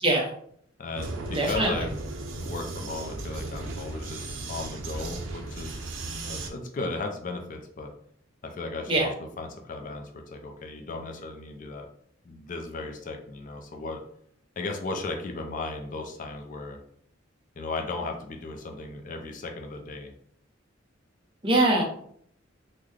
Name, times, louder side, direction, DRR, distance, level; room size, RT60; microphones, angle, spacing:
voice 1, 0.8-2.0 2.3-7.9 8.4-11.9 12.2-14.0 14.6-16.8 17.6-20.1, left 3 dB, 40° left, 3 dB, 0.4 m, -36 dB
Vehicle, 0.9-6.5, right 2 dB, 80° right, 0.5 m, -36 dB
voice 2, 1.3-1.8 8.9-9.1 21.4-21.8, right 2 dB, 25° right, 0 dB, 0.7 m, -23 dB
3.7 x 2.1 x 3.1 m, 0.64 s
head